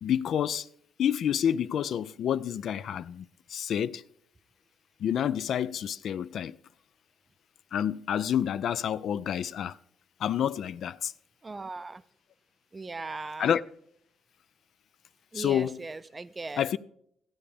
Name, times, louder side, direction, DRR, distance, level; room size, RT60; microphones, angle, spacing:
voice 1, 0.0-0.7 1.0-4.0 5.0-6.6 7.7-9.8 10.2-11.1 13.4-13.6 15.3-15.8 16.6-16.8, left 9 dB, 65° left, 0.3 m, -28 dB
voice 2, 11.4-12.0 12.7-13.5 15.3-16.7, right 3 dB, 25° right, 0.4 m, -38 dB
14.5 x 8.6 x 3.4 m
cardioid pair, 90°, 0 cm